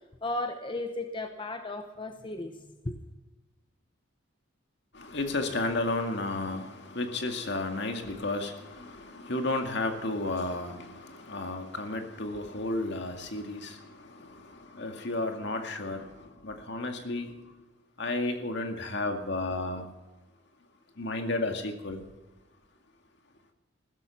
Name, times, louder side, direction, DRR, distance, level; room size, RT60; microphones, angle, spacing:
voice 1, 0.2-3.0, left 2 dB, 25° left, 6 dB, 0.9 m, -35 dB
voice 2, 4.9-17.3 18.0-19.9 21.0-22.0, left 2 dB, 60° left, 5 dB, 2.1 m, -33 dB
16.0 x 13.5 x 5.8 m, 1.1 s
head